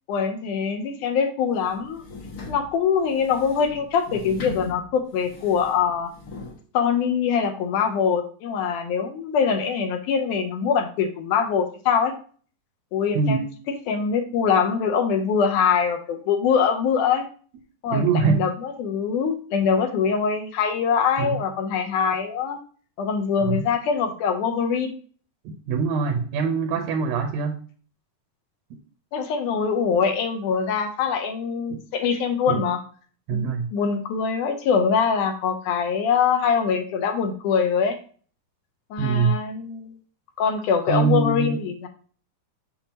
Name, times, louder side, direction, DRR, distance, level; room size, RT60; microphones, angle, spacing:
voice 1, 0.1-2.0 2.5-6.1 6.7-12.1 12.9-13.4 13.9-17.3 17.8-22.6 23.0-24.9 29.1-32.8 33.3-38.0 38.9-40.0 40.4-41.9, left 6 dB, 75° left, 5 dB, 2.3 m, -23 dB
sound 1, 1.5-6.6, left 3 dB, 60° left, 0.9 m, -39 dB
voice 2, 17.9-18.4 21.2-21.4 23.4-23.6 25.5-27.6 32.5-32.6 33.3-33.7 39.0-39.4 40.9-41.6, right 5 dB, 70° right, 4 dB, 1.8 m, -23 dB
7.2 x 6.3 x 2.9 m, 0.42 s
omnidirectional pair, 3.8 m